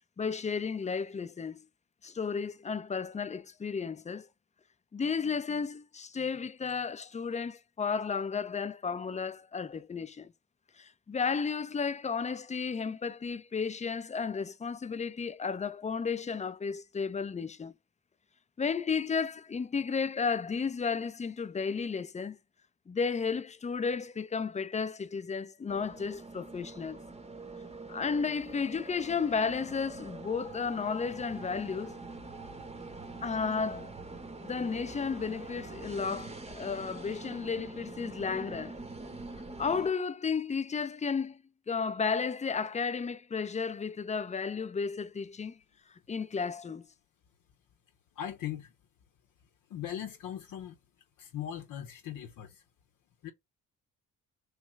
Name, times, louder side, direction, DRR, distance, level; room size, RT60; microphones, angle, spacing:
voice 1, 0.2-1.6 2.0-4.3 4.9-10.3 10.8-17.7 18.6-22.4 22.9-27.0 27.9-31.9 33.2-33.9 34.4-38.8 39.6-41.4 41.7-45.6 46.1-46.8, left 5 dB, 20° left, 0.5 m, -33 dB
sound 1, 25.7-39.9, right 3 dB, 20° right, 0.9 m, -44 dB
voice 2, 48.2-48.7 49.7-50.8 51.2-52.6 53.2-53.3, left 10 dB, 70° left, 0.8 m, -39 dB
3.3 x 3.1 x 4.6 m
supercardioid pair, 65°, 33 cm